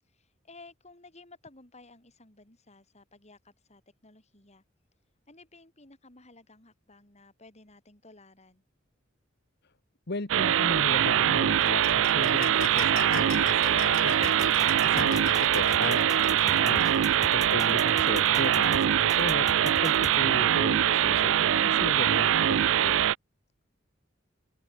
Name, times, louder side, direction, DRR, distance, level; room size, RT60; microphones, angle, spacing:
voice 1, 0.4-4.6 5.3-8.6, left 2 dB, 35° left, 4.9 m, -54 dB
voice 2, 10.1-16.9 17.3-22.9, left 2 dB, 60° left, 1.4 m, -36 dB
sound 1, 10.3-23.1, right 10 dB, 80° right, 0.4 m, -23 dB
sound 2, 11.6-17.3, left 8 dB, 75° left, 0.7 m, -40 dB
sound 3, 14.2-20.2, left 3 dB, 20° left, 1.6 m, -42 dB
head